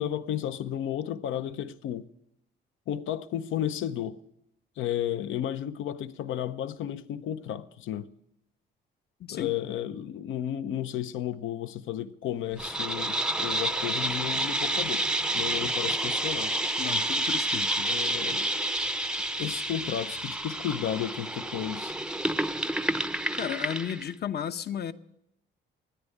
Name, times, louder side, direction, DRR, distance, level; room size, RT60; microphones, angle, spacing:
voice 1, 0.0-2.1 2.9-4.2 4.8-8.1 9.3-15.1 15.3-16.5 17.8-18.5 19.4-22.0, left 10 dB, 85° left, 0.7 m, -33 dB
sound 1, 12.6-24.1, right 1 dB, 5° right, 0.5 m, -29 dB
voice 2, 16.8-17.9 23.4-24.9, left 9 dB, 55° left, 0.8 m, -33 dB
13.5 x 9.9 x 9.2 m
cardioid pair, 90°, 20 cm